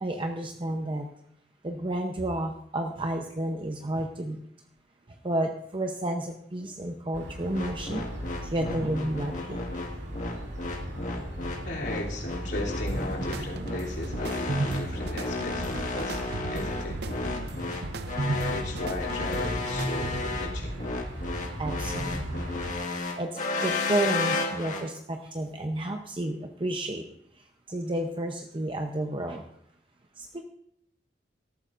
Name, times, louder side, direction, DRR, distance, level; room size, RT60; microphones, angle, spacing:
voice 1, 0.0-1.1 1.6-4.4 5.2-8.1 8.4-9.6 21.6-22.4 23.2-27.1 27.4-29.4 30.2-30.4, right 1 dB, 30° right, 3 dB, 0.8 m, -31 dB
sound 1, 7.1-22.7, equal, 90° right, 2.8 m, -36 dB
sound 2, 7.5-24.8, left 3 dB, 45° left, 1.7 m, -33 dB
voice 2, 11.6-16.2 16.5-17.0 18.2-20.8, left 2 dB, 70° left, -3 dB, 3.1 m, -37 dB
sound 3, 12.9-20.5, right 3 dB, 65° right, 0.6 m, -36 dB
17.5 x 13.5 x 2.6 m, 0.70 s
head